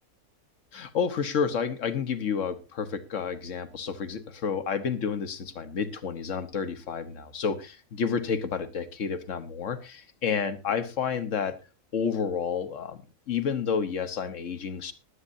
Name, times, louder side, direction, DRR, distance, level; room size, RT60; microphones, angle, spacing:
voice 1, 0.7-11.6 11.9-14.9, left 6 dB, 60° left, 12 dB, 1.5 m, -30 dB
19.5 x 11.0 x 2.6 m, 0.28 s
omnidirectional pair, 1.5 m